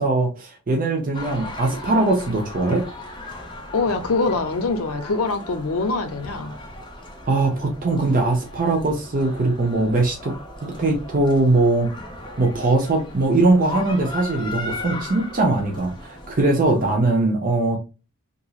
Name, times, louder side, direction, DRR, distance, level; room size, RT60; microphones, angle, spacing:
voice 1, 0.0-2.8 7.3-10.4 10.6-11.9 12.4-17.8, right 2 dB, 40° right, 0.6 m, -21 dB
sound 1, 1.1-17.0, left 1 dB, 20° left, 0.6 m, -37 dB
voice 2, 3.7-6.6, left 3 dB, 80° left, 0.5 m, -24 dB
2.9 x 2.6 x 2.3 m
head